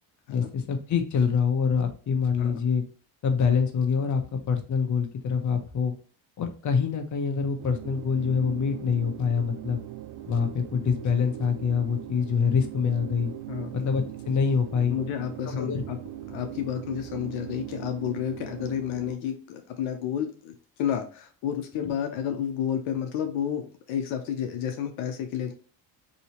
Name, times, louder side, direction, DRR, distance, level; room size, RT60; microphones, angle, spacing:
voice 1, 0.3-2.9 3.2-5.9 6.4-9.8 10.2-13.3 13.7-15.0 15.4-15.8 21.8-21.9, left 6 dB, 35° left, 5 dB, 0.7 m, -25 dB
sound 1, 7.6-19.1, right 13 dB, 55° right, 0.5 m, -40 dB
voice 2, 14.9-16.0 16.3-25.5, left 9 dB, 70° left, 5 dB, 0.7 m, -31 dB
2.9 x 2.7 x 2.8 m, 0.41 s
supercardioid pair, 75°, 50 cm